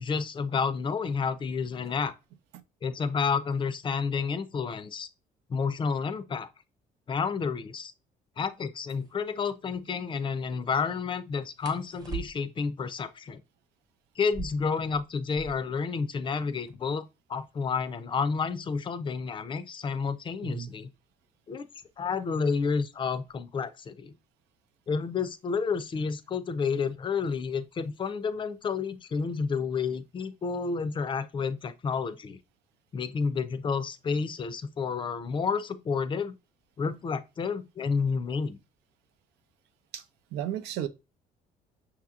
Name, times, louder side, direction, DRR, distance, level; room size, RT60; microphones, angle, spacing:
voice 1, 0.0-2.1 2.8-5.1 5.5-6.5 7.1-7.9 8.4-13.4 14.2-20.9 21.5-21.7 22.0-24.1 24.9-32.4 32.9-36.3 36.8-38.6, left 5 dB, 30° left, 0.5 m, -30 dB
sound 1, 8.9-9.1 11.6-12.7 14.2-15.8 16.1-16.2 16.4-17.0 17.6-20.2 21.2-21.5 21.9-22.4 22.7-23.4, right 4 dB, 25° right, 0.8 m, -43 dB
voice 2, 40.3-40.9, right 11 dB, 85° right, 0.6 m, -33 dB
5.9 x 2.8 x 2.4 m
cardioid pair, 110°, 17 cm